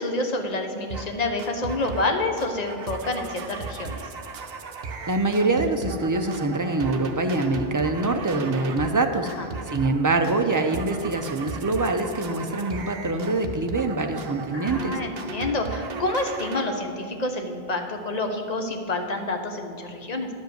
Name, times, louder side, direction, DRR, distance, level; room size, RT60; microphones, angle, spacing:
voice 1, 0.0-4.0 9.2-9.5 14.5-20.3, left 2 dB, 40° left, 4 dB, 1.0 m, -28 dB
sound 1, 0.9-1.1 1.4-2.1 2.4-9.0 9.3-10.0 10.2-16.6, right 4 dB, 65° right, 1.0 m, -36 dB
voice 2, 5.1-9.3 9.7-15.0, right 2 dB, 25° right, 5 dB, 0.4 m, -24 dB
10.5 x 5.3 x 7.9 m, 2.2 s
omnidirectional pair, 1.1 m